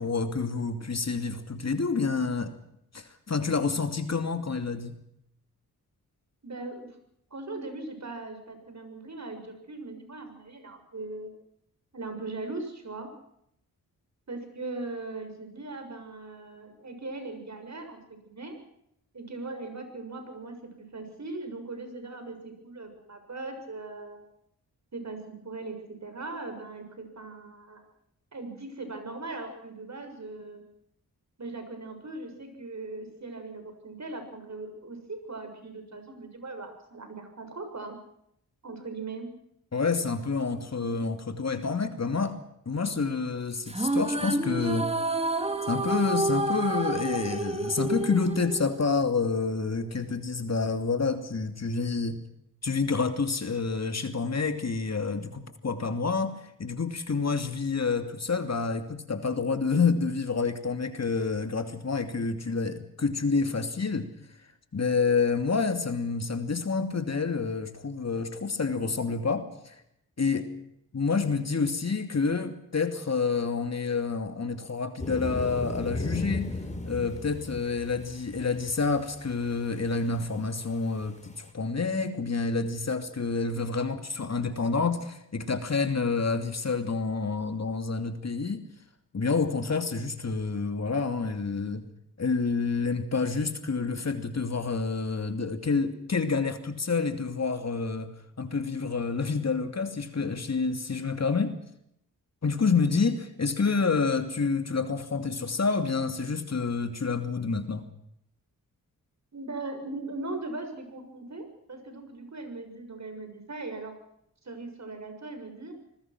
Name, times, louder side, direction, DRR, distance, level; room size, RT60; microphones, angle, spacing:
voice 1, 0.0-2.5 2.9-5.0 39.7-42.4 42.7-45.0 45.7-52.3 52.6-64.1 64.7-69.8 70.2-70.5 70.9-76.5 76.9-88.6 89.1-91.9 92.2-101.6 102.4-107.9, left 4 dB, 45° left, 7 dB, 2.8 m, -28 dB
voice 2, 6.4-6.9 7.3-11.3 11.9-13.1 14.3-18.6 19.1-24.2 24.9-27.8 28.3-30.6 31.4-37.9 38.6-39.3 40.8-40.9 109.3-113.9 114.4-115.8, right 3 dB, 50° right, 6 dB, 6.9 m, -39 dB
sound 1, 43.7-49.2, right 2 dB, 15° right, 2.7 m, -29 dB
sound 2, 75.0-80.5 80.7-80.8 81.0-81.1 81.3-81.4, left 1 dB, 20° left, 4.7 m, -36 dB
26.5 x 20.0 x 6.2 m, 0.75 s
cardioid pair, 55°, 36 cm